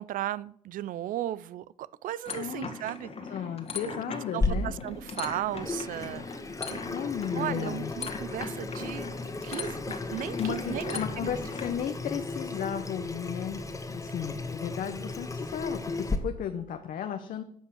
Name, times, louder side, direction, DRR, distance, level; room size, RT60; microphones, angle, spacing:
voice 1, 0.0-3.4 3.8-3.9 4.3-6.2 6.7-6.8 7.3-9.1 9.4-11.3, right 13 dB, 65° right, 19 dB, 0.4 m, -36 dB
sound 1, 2.2-11.7, left 4 dB, 45° left, 1.7 m, -39 dB
voice 2, 2.4-2.7 3.3-4.7 6.9-7.9 10.4-13.6 13.9-17.4, left 9 dB, 65° left, 7 dB, 0.9 m, -34 dB
Water tap faucet / Sink (filling or washing), 4.4-16.2, left 3 dB, 20° left, 1.5 m, -35 dB
10.0 x 5.4 x 7.7 m, 0.66 s
cardioid pair, 80°, 15 cm